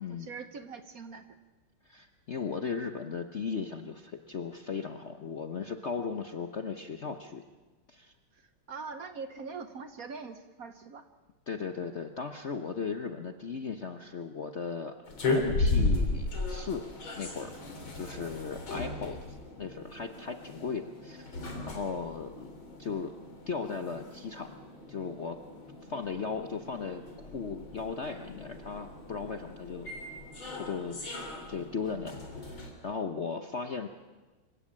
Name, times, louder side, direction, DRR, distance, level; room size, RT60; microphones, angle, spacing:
voice 1, 0.0-1.4 8.3-11.1, right 5 dB, 50° right, 9 dB, 1.2 m, -43 dB
voice 2, 1.8-7.4 7.9-8.1 11.5-14.9 15.2-16.9 17.1-17.6 17.9-22.5 22.8-23.2 23.5-24.6 24.9-25.4 25.9-29.9 30.5-31.0 31.5-33.9, left 5 dB, 50° left, 7 dB, 0.9 m, -37 dB
sound 1, 15.1-32.7, left 2 dB, 70° left, 4.2 m, -36 dB
25.0 x 16.0 x 8.7 m, 1.2 s
omnidirectional pair, 2.3 m